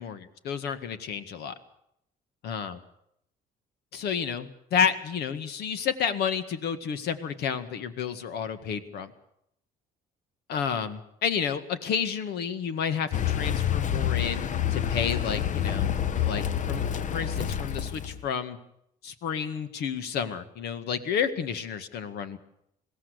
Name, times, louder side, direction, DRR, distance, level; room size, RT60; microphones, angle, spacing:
voice 1, 0.0-1.5 2.4-2.8 3.9-9.1 10.5-18.6 19.0-22.4, left 7 dB, 75° left, 10 dB, 1.9 m, -31 dB
Car, 13.1-18.3, left 9 dB, 45° left, 1.0 m, -28 dB
21.5 x 16.5 x 8.2 m, 0.75 s
cardioid pair, 110°, 17 cm